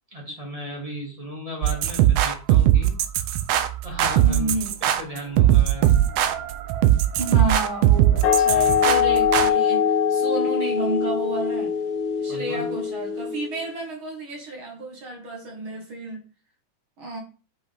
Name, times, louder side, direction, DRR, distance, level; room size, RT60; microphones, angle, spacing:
voice 1, 0.1-3.0 3.8-4.5 4.8-5.9 8.5-8.8 12.3-12.6, equal, 15° right, -1 dB, 1.6 m, -36 dB
sound 1, 1.6-9.5, right 12 dB, 80° right, 1.4 m, -20 dB
voice 2, 4.2-4.7 7.2-11.7 12.2-16.2 17.0-17.2, right 1 dB, 45° right, 0 dB, 2.1 m, -31 dB
sound 2, 8.2-13.7, left 7 dB, 75° left, 2.3 m, -22 dB
7.7 x 5.3 x 3.5 m, 0.36 s
omnidirectional pair, 3.7 m